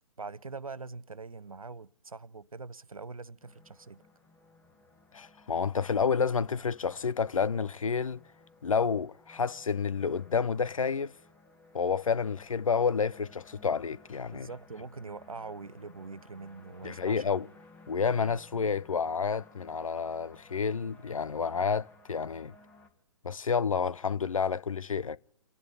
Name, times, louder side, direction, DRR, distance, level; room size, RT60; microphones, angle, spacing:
voice 1, 0.2-4.1 14.3-17.5, right 4 dB, 85° right, 0.7 m, -43 dB
sound 1, 3.4-22.9, left 2 dB, 10° left, 1.7 m, -58 dB
voice 2, 5.1-8.2 8.6-11.1 11.7-14.5 16.8-17.5 17.9-22.5 23.2-25.2, left 6 dB, 75° left, 0.7 m, -29 dB
30.0 x 10.5 x 4.2 m
figure-of-eight pair, 130°, 17 cm